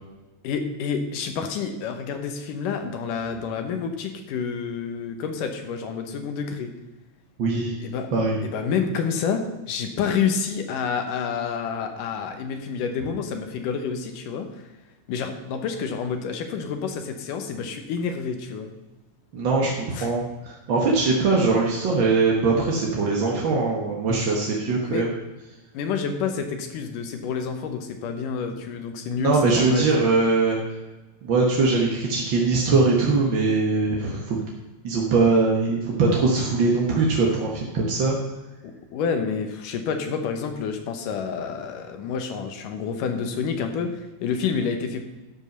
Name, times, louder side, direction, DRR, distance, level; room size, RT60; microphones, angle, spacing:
voice 1, 0.4-6.7 7.8-8.1 8.4-14.6 15.1-18.7 19.9-20.1 24.7-25.1 25.7-30.1 38.6-45.0, left 6 dB, 75° left, 6 dB, 2.6 m, -28 dB
voice 2, 7.4-7.8 8.1-8.4 19.3-25.1 29.2-30.6 31.2-34.4 34.8-38.2, right 3 dB, 55° right, -2 dB, 1.4 m, -21 dB
12.5 x 5.4 x 6.6 m, 1.1 s
omnidirectional pair, 3.8 m